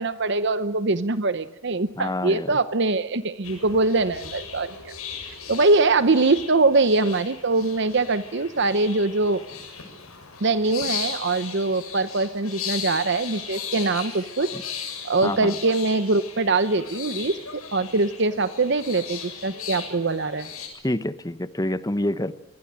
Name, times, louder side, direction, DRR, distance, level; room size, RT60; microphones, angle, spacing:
voice 1, 0.0-4.9 5.5-9.4 10.4-14.5 15.0-20.5, right 3 dB, 55° right, 0.8 m, -23 dB
voice 2, 2.0-2.6 14.5-14.6 15.2-15.6 20.8-22.3, left 1 dB, 15° left, 0.9 m, -27 dB
sound 1, 3.4-20.7, left 7 dB, 85° left, 7.1 m, -37 dB
25.5 x 21.0 x 8.9 m
head